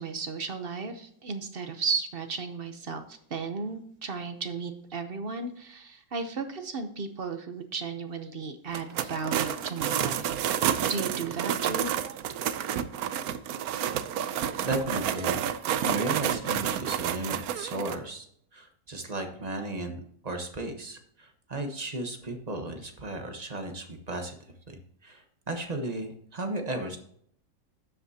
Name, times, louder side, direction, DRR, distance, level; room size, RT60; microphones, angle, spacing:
voice 1, 0.0-10.4 10.8-11.9, right 4 dB, 50° right, 7 dB, 0.7 m, -34 dB
sound 1, 8.7-18.0, right 9 dB, 70° right, 0.9 m, -30 dB
voice 2, 14.6-15.4 15.8-18.2 18.5-24.3 24.7-27.0, right 2 dB, 25° right, 5 dB, 1.0 m, -35 dB
12.5 x 7.8 x 2.8 m, 0.65 s
omnidirectional pair, 2.0 m